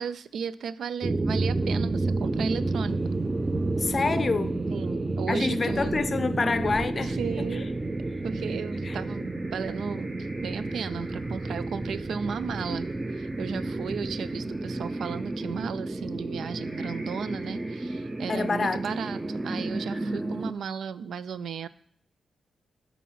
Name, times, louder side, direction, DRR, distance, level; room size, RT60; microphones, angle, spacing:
voice 1, 0.0-3.0 4.7-6.0 7.0-7.7 8.2-21.7, right 6 dB, 85° right, 0.3 m, -35 dB
sound 1, 1.0-20.5, right 2 dB, 20° right, 0.5 m, -31 dB
voice 2, 3.8-4.6 5.3-7.2 7.5-7.6 8.8-9.0 18.3-19.0, left 4 dB, 40° left, 0.5 m, -27 dB
sound 2, 7.1-20.6, right 1 dB, 55° right, 3.6 m, -50 dB
8.4 x 4.2 x 5.5 m
cardioid pair, 90°, 0 cm